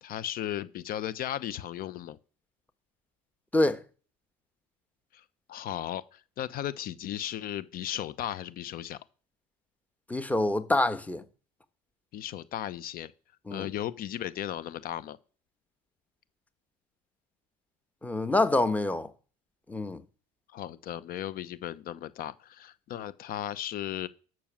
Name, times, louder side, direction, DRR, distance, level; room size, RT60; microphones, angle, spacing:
voice 1, 0.0-2.2 5.1-5.2 5.5-9.0 12.1-13.1 13.5-15.2 20.5-24.1, left 12 dB, 55° left, 0.8 m, -36 dB
voice 2, 10.1-11.2 13.5-13.7 18.0-19.1 19.7-20.0, left 2 dB, 10° left, 1.2 m, -26 dB
12.0 x 6.2 x 7.4 m
supercardioid pair, 105°, 18 cm